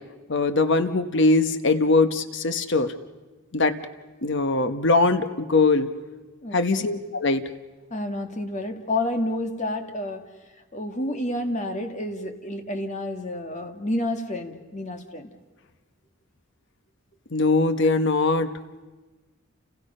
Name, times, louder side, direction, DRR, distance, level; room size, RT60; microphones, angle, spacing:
voice 1, 0.3-2.9 3.5-3.8 4.2-5.9 6.5-7.4 17.3-18.5, left 3 dB, 55° left, 10 dB, 1.0 m, -21 dB
voice 2, 6.4-6.9 7.9-10.3 10.7-15.3, left 1 dB, 30° left, 5 dB, 1.8 m, -30 dB
30.0 x 29.0 x 5.5 m, 1.2 s
head